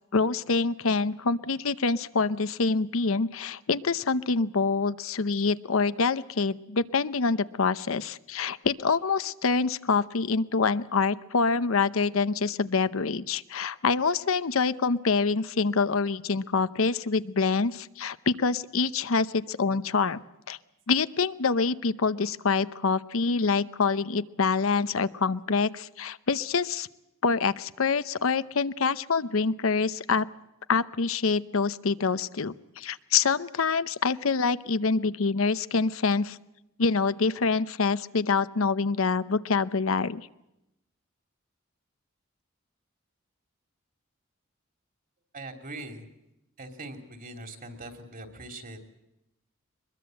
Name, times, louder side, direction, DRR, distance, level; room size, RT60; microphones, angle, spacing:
voice 1, 0.1-20.2 20.5-20.6 20.9-26.9 27.2-30.3 30.7-36.4 36.8-40.2, left 4 dB, 70° left, 14 dB, 0.8 m, -26 dB
voice 2, 45.3-46.0 46.6-48.8, right 2 dB, 45° right, 6 dB, 3.1 m, -41 dB
23.0 x 21.5 x 7.8 m, 0.88 s
head